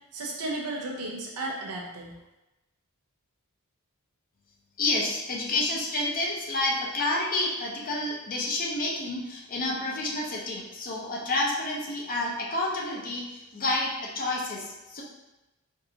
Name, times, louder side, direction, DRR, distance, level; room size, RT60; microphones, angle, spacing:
voice 1, 0.1-2.2, right 2 dB, 85° right, -2 dB, 0.8 m, -34 dB
voice 2, 4.8-15.0, left 2 dB, 40° left, -3 dB, 0.7 m, -29 dB
4.6 x 2.5 x 2.9 m, 1.0 s
head